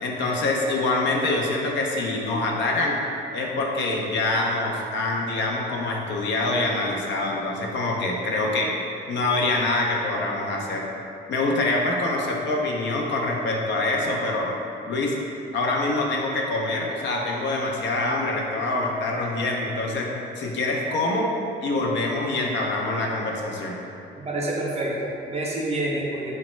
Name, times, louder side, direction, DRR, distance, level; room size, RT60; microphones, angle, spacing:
voice 1, 0.0-3.0 3.3-8.7 9.1-10.9 11.3-14.5 14.9-15.2 15.5-21.3 21.6-23.8, left 2 dB, 65° left, -1 dB, 0.4 m, -25 dB
voice 2, 24.1-26.3, right 1 dB, 30° right, -3 dB, 0.5 m, -28 dB
3.0 x 2.1 x 3.0 m, 2.7 s
cardioid pair, 90°, 20 cm